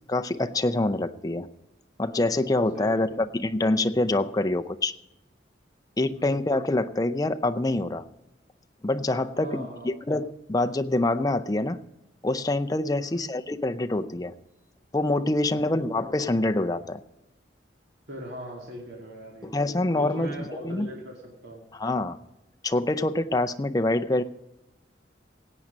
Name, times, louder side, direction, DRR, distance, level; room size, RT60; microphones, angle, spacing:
voice 1, 0.1-1.5 2.0-4.9 6.0-8.1 8.8-11.8 12.2-14.3 14.9-17.0 19.4-20.9 21.8-22.2 22.6-24.2, left 2 dB, 20° left, 8 dB, 0.5 m, -26 dB
voice 2, 2.7-3.2 6.1-6.4 9.3-9.9 12.9-13.2 15.5-15.8 18.1-21.7, right 1 dB, 65° right, -1 dB, 2.5 m, -40 dB
17.0 x 8.7 x 5.2 m, 0.91 s
head